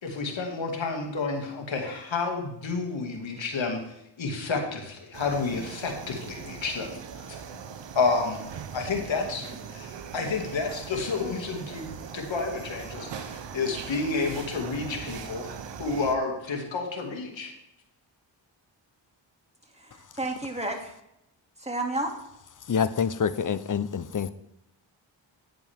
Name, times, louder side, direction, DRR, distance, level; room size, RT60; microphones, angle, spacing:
voice 1, 0.0-7.3 7.9-8.4 8.7-15.5 15.8-17.5, left 4 dB, 70° left, 2 dB, 2.3 m, -30 dB
sound 1, 5.1-16.2, right 7 dB, 65° right, 1.0 m, -40 dB
voice 2, 19.7-20.9 21.6-22.1 22.8-22.9, right 2 dB, 15° right, 2 dB, 2.5 m, -32 dB
voice 3, 22.7-24.3, left 7 dB, 40° left, 15 dB, 0.7 m, -26 dB
10.0 x 9.5 x 3.6 m, 0.81 s
cardioid pair, 55°, 47 cm